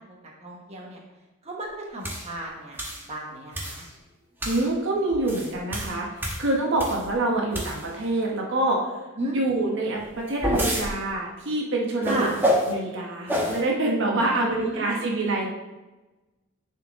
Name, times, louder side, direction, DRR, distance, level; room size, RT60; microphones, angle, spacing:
voice 1, 0.2-1.0 1.4-2.8 3.1-3.8 9.2-9.4 12.0-12.3 14.2-14.3 14.7-15.1, right 1 dB, 30° right, -2 dB, 1.2 m, -33 dB
sound 1, 2.0-2.3 2.8-3.0 3.5-3.9 4.4-4.7 5.1-7.1 7.5-8.0 10.0-10.9 12.0-12.7 13.3-13.6, equal, 10° right, 1.1 m, -27 dB
voice 2, 4.4-9.0 9.3-15.5, right 2 dB, 60° right, -1 dB, 1.1 m, -26 dB
9.7 x 4.4 x 3.6 m, 1.1 s
head